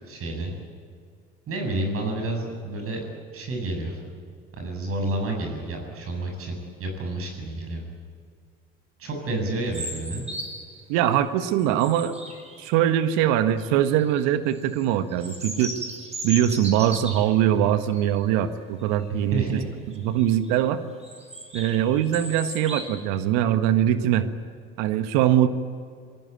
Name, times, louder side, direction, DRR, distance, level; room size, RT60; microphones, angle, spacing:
voice 1, 0.1-0.5 1.5-3.0 3.3-4.0 4.5-7.8 9.0-10.2 19.1-19.6, right 2 dB, 50° right, 2 dB, 7.6 m, -30 dB
sound 1, 9.7-10.8 11.3-13.0 13.6-14.1 14.5-17.4 17.9-18.1 18.5-18.6 19.0-19.3 19.9-20.5 21.0-22.9, right 1 dB, 20° right, 5.8 m, -37 dB
voice 2, 10.9-12.1 12.6-15.7 16.2-19.6 20.0-20.8 21.5-24.3 24.8-25.5, right 11 dB, 65° right, 11 dB, 1.6 m, -22 dB
26.5 x 19.0 x 9.2 m, 2.2 s
hypercardioid pair, 65°, 30 cm